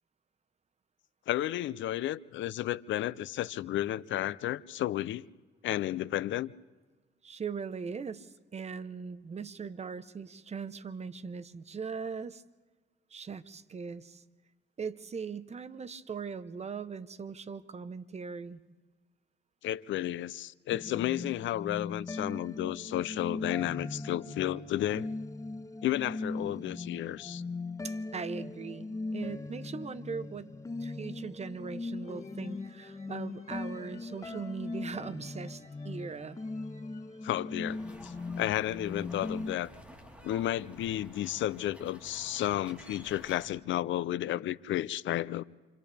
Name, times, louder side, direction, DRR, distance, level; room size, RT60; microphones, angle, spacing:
voice 1, 1.3-5.2 5.6-6.5 19.6-25.1 25.8-27.4 37.2-39.7 40.2-45.4, left 13 dB, 75° left, 0.6 m, -32 dB
voice 2, 7.2-12.4 13.1-14.2 14.8-18.6 27.8-30.5 30.8-36.4, right 5 dB, 35° right, 0.9 m, -40 dB
sound 1, 20.7-39.6, left 3 dB, 15° left, 0.6 m, -39 dB
sound 2, 31.8-38.8, left 4 dB, 35° left, 2.5 m, -62 dB
sound 3, 37.7-43.5, equal, 5° right, 3.8 m, -51 dB
28.5 x 26.5 x 3.5 m
cardioid pair, 90°, 20 cm